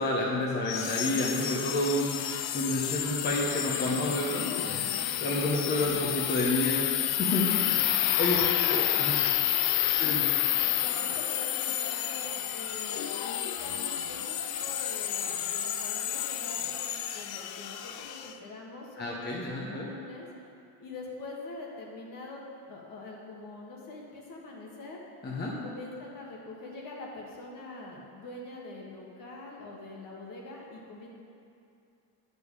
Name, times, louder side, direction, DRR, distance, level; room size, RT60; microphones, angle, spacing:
voice 1, 0.0-7.5 8.2-8.4 8.7-9.1 10.0-10.2 19.0-19.8 25.2-25.5, left 1 dB, 25° left, -4 dB, 1.1 m, -30 dB
sound 1, 0.7-18.3, left 12 dB, 70° left, 0.6 m, -30 dB
voice 2, 10.0-20.3 20.8-25.0 25.5-31.1, left 2 dB, 50° left, -2 dB, 1.8 m, -44 dB
9.3 x 5.4 x 4.8 m, 2.5 s
cardioid pair, 115°, 41 cm